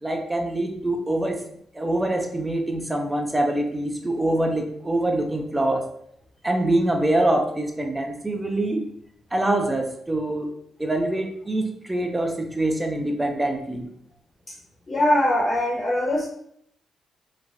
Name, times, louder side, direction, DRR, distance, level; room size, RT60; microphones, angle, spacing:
voice 1, 0.0-1.4 1.7-5.9 6.4-8.9 9.3-10.5 10.8-13.9, right 1 dB, 15° right, 3 dB, 0.5 m, -24 dB
voice 2, 14.9-16.2, left 1 dB, 30° left, -3 dB, 0.7 m, -22 dB
3.2 x 2.1 x 2.4 m, 0.69 s
cardioid pair, 90°, 0 cm